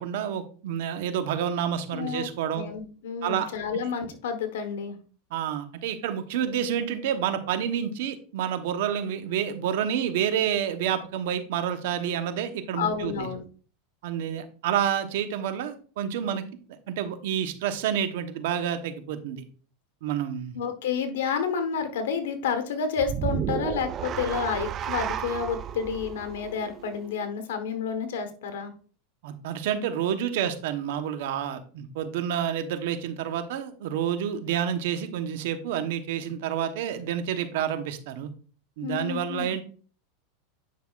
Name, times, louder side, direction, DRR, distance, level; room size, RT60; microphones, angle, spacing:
voice 1, 0.0-2.7 3.2-3.5 5.3-13.3 14.0-16.4 16.9-19.4 20.0-20.6 29.2-38.3 38.8-39.6, right 9 dB, 70° right, 8 dB, 1.0 m, -29 dB
voice 2, 1.9-5.0 12.7-13.4 20.5-28.7 38.8-39.6, left 6 dB, 85° left, 8 dB, 1.3 m, -30 dB
sound 1, 23.0-27.3, right 10 dB, 35° right, 0.4 m, -32 dB
9.5 x 5.6 x 2.5 m, 0.40 s
supercardioid pair, 130°, 0 cm